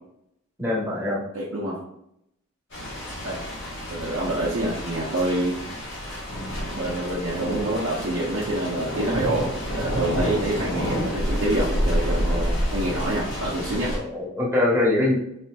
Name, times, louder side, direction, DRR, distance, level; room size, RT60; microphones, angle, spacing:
voice 1, 0.6-1.2 12.2-12.4 13.9-15.1, left 2 dB, 10° right, -6 dB, 0.9 m, -23 dB
voice 2, 1.3-1.8 3.2-3.4 3.9-5.6 6.7-13.9, right 1 dB, 65° right, -5 dB, 0.6 m, -27 dB
sound 1, 2.7-14.0, equal, 55° left, 1.2 m, -29 dB
4.1 x 2.6 x 2.2 m, 0.77 s
head